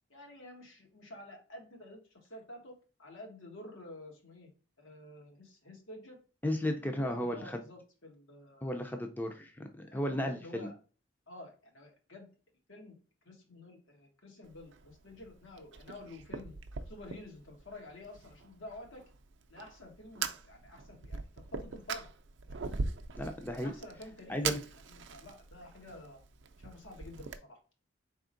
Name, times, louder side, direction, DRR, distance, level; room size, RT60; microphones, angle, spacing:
voice 1, 0.1-4.5 4.8-6.2 6.9-8.9 9.9-10.8 11.3-12.3 12.7-13.0 13.2-16.5 16.9-19.1 19.5-22.1 22.6-22.8 23.6-24.4 24.9-26.2 26.6-27.6, left 1 dB, 85° left, 2 dB, 1.5 m, -50 dB
voice 2, 6.4-7.6 8.6-10.7 23.2-23.7 24.3-24.6, left 1 dB, 10° left, 4 dB, 0.4 m, -34 dB
Fire, 14.4-27.4, right 5 dB, 65° right, 0.5 m, -42 dB
4.2 x 3.6 x 2.5 m, 0.37 s
head